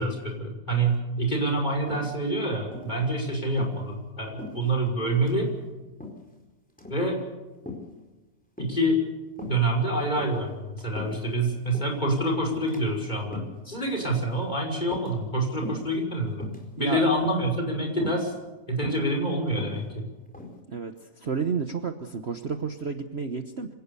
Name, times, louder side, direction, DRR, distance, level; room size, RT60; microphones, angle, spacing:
voice 1, 0.0-5.5 6.9-7.2 8.6-9.0 9.5-16.5 16.8-18.3 18.7-20.1, right 1 dB, 25° left, 1 dB, 6.0 m, -27 dB
sound 1, 1.9-2.4 2.7-3.0 3.5-3.8 4.4-4.9 5.2-5.4 6.0-6.3 6.7-7.0 7.7-7.9 8.6-8.9 9.4-9.6 10.1-11.3 11.7-12.0 12.5-12.8 13.2-13.6 14.1-14.4 14.8-15.4 15.6-15.9 16.3-16.6 17.2-17.5 18.0-18.2 18.8-19.1 19.5-20.6, left 2 dB, 5° left, 4.5 m, -40 dB
voice 2, 21.2-23.7, right 5 dB, 40° right, 7 dB, 1.3 m, -30 dB
26.0 x 18.0 x 7.0 m, 1.2 s
omnidirectional pair, 1.8 m